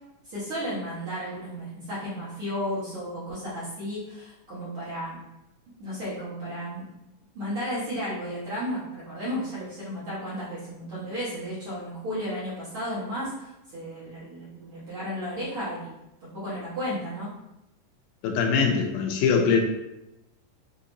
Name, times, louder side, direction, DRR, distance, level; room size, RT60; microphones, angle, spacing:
voice 1, 0.2-5.2 5.8-6.8 7.3-15.9 16.2-17.3, equal, 55° right, -11 dB, 1.6 m, -33 dB
voice 2, 18.2-19.6, left 6 dB, 85° left, 2 dB, 2.3 m, -22 dB
6.4 x 2.8 x 2.7 m, 0.89 s
omnidirectional pair, 3.9 m